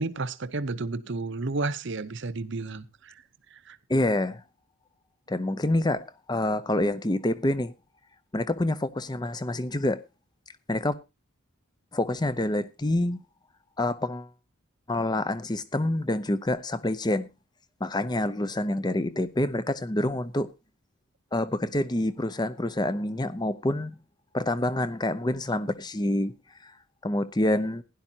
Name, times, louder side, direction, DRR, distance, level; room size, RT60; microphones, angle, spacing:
voice 1, 0.0-3.1 3.5-3.8, right 3 dB, 55° right, 0.8 m, -32 dB
voice 2, 3.9-4.4 5.3-7.7 8.3-10.0 10.7-10.9 11.9-13.2 13.8-14.3 14.9-17.3 17.8-20.5 21.3-24.0 24.3-26.3 26.6-26.7 27.0-27.8, left 1 dB, 20° left, 0.7 m, -27 dB
16.5 x 11.0 x 2.8 m
head